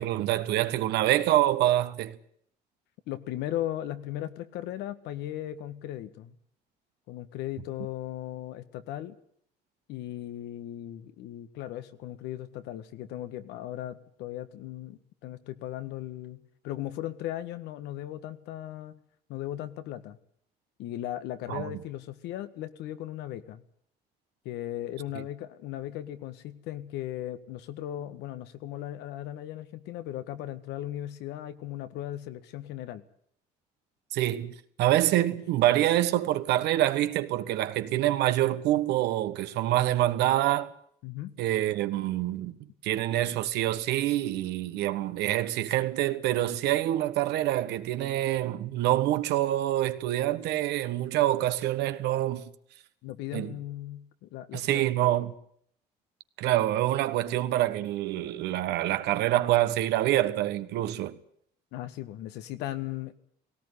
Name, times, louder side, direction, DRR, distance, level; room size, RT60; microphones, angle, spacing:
voice 1, 0.0-2.2 21.5-21.7 34.1-40.7 41.4-42.5 42.8-52.4 53.3-53.5 54.5-55.3 56.4-61.2, right 14 dB, 85° right, 1.5 m, -26 dB
voice 2, 3.1-6.4 7.1-9.2 9.9-19.0 19.3-20.2 20.8-23.6 24.5-33.0 41.0-41.3 53.0-54.9 61.7-63.1, left 13 dB, 90° left, 1.6 m, -37 dB
18.0 x 17.5 x 9.9 m
cardioid pair, 110°, 17 cm